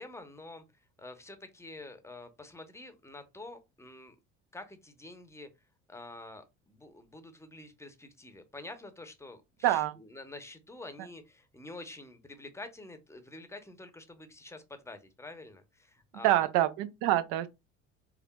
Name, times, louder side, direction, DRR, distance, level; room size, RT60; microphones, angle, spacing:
voice 1, 0.0-4.2 4.5-5.5 5.9-16.5, left 2 dB, 5° left, 0.8 m, -47 dB
voice 2, 9.6-9.9 16.2-17.5, right 14 dB, 65° right, 0.6 m, -26 dB
4.7 x 2.4 x 2.3 m
hypercardioid pair, 65°, 38 cm